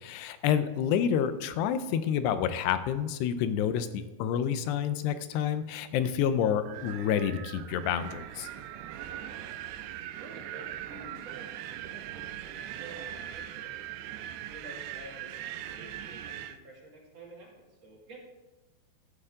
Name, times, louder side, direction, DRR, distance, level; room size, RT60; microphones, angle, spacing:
voice 1, 0.0-8.5, left 8 dB, 90° left, 11 dB, 2.9 m, -28 dB
Wind, 6.7-16.6, right 11 dB, 90° right, 2.7 m, -41 dB
voice 2, 9.0-9.5 9.9-13.8 14.5-18.2, right 2 dB, 45° right, -3 dB, 3.1 m, -50 dB
13.5 x 11.5 x 3.7 m, 1.1 s
omnidirectional pair, 4.7 m